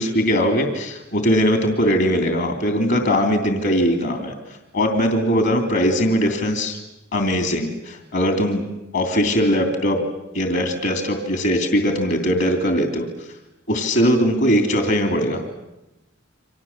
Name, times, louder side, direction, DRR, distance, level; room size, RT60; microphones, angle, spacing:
voice 1, 0.0-4.3 4.7-6.8 7.1-8.6 8.9-10.0 10.3-13.0 13.7-15.4, equal, 60° left, 4 dB, 3.2 m, -20 dB
30.0 x 25.0 x 7.4 m, 0.92 s
head